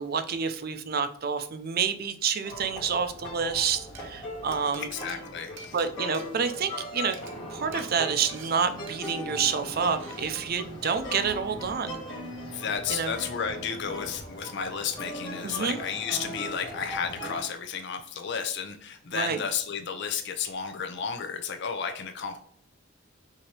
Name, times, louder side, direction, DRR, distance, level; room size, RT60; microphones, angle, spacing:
voice 1, 0.0-4.9 5.7-7.2 7.5-12.0 12.9-13.1 15.4-15.8 19.1-19.4, right 6 dB, 50° right, 9 dB, 0.5 m, -28 dB
sound 1, 2.4-17.4, left 1 dB, 25° left, 1.8 m, -39 dB
Glass, 3.9-4.0 4.5-6.8 7.1-7.3 7.7-7.9 8.3-8.5 8.9-9.1 9.5-9.7 10.0-10.3, right 5 dB, 65° right, 0.8 m, -47 dB
voice 2, 4.8-5.8 12.5-22.4, left 6 dB, 60° left, 6 dB, 0.6 m, -32 dB
5.8 x 2.8 x 3.2 m, 0.62 s
head